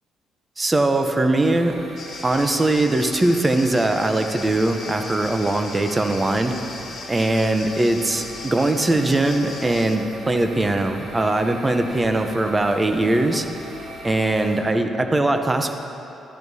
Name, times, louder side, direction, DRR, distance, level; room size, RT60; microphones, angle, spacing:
voice 1, 0.6-1.7 2.2-6.5 7.1-13.4 14.0-15.7, right 2 dB, 20° right, 6 dB, 0.7 m, -21 dB
sound 1, 1.4-14.6, right 1 dB, 80° right, 2.0 m, -40 dB
sound 2, 2.0-10.0, left 4 dB, 55° left, 1.1 m, -38 dB
13.0 x 10.5 x 2.7 m, 2.9 s
cardioid pair, 90°, 0 cm